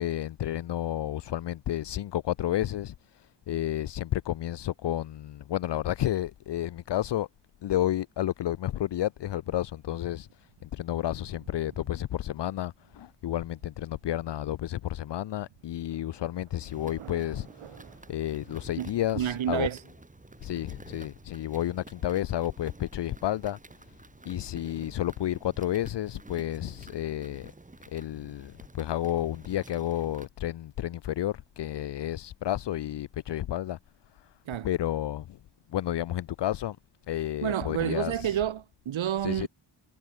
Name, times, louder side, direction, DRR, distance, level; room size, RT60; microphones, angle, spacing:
voice 1, 0.0-7.3 7.6-17.8 18.1-19.7 20.4-23.6 24.2-27.5 27.9-33.8 34.2-34.3 34.6-35.4 35.7-36.8 37.1-38.4 39.2-39.5, left 12 dB, 60° left, 0.8 m, -31 dB
Thunder, 9.6-18.6, right 10 dB, 90° right, 6.6 m, -55 dB
sound 1, 16.6-30.3, right 2 dB, 15° right, 4.9 m, -51 dB
voice 2, 19.2-19.8 34.5-34.7 37.4-39.5, right 10 dB, 70° right, 2.7 m, -29 dB
wide cardioid pair, 155°, 48 cm